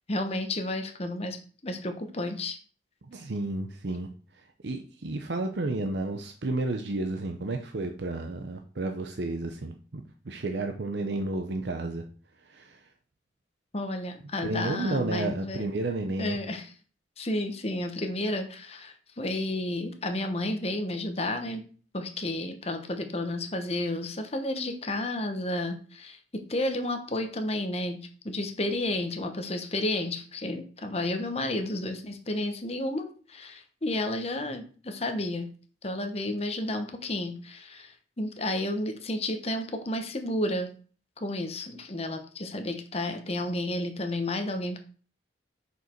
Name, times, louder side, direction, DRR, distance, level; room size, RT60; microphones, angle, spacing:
voice 1, 0.1-2.6 13.7-15.8 16.2-16.7 17.2-21.6 21.9-28.0 28.2-35.5 35.8-40.7 41.2-44.8, left 1 dB, 35° left, 6 dB, 1.1 m, -31 dB
voice 2, 3.0-4.1 4.6-12.0 12.5-12.8 14.4-16.4, right 2 dB, 70° right, 5 dB, 0.7 m, -32 dB
6.5 x 5.3 x 4.5 m, 0.40 s
head